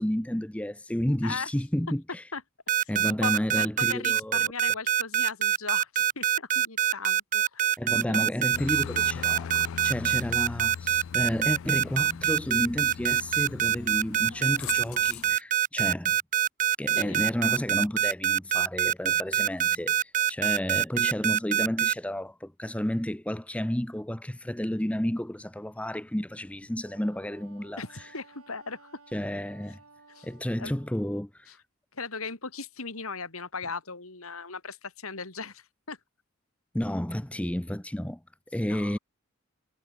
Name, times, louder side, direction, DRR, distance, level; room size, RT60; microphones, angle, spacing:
voice 1, 0.0-2.2 2.9-4.5 7.8-9.5 9.8-16.2 16.8-27.8 29.1-29.8 30.2-31.5 36.7-38.2 38.5-39.0, equal, 5° left, 0.6 m, -31 dB
sound 1, 2.7-21.9, right 10 dB, 35° right, 0.4 m, -24 dB
voice 2, 2.8-7.7 8.1-8.3 16.9-17.2 27.8-28.9 30.1-30.3 30.6-30.7 31.5-31.6 31.9-36.0 38.6-39.0, left 4 dB, 80° left, 3.5 m, -38 dB
Aircraft, 8.5-15.4, left 7 dB, 65° left, 0.4 m, -40 dB
Wind instrument woodwind instrument, 26.8-31.1, right 3 dB, 90° right, 5.2 m, -56 dB
head